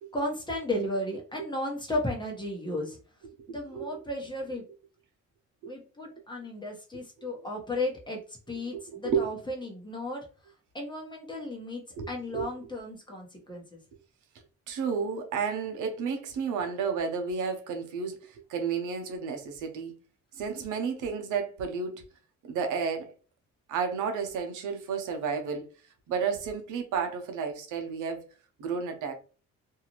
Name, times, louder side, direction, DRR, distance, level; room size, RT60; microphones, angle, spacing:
voice 1, 0.1-3.0 3.5-4.6 5.7-8.2 8.5-10.2 10.7-11.8 12.1-13.8, left 1 dB, 15° left, 1.1 m, -34 dB
voice 2, 3.5-4.0 5.6-5.7 8.7-9.3 12.0-12.5 14.7-19.9 20.3-22.0 22.5-23.1 23.7-25.7 26.1-28.2 28.6-29.1, right 6 dB, 80° right, 0.8 m, -32 dB
2.7 x 2.4 x 3.0 m
cardioid pair, 90°, 30 cm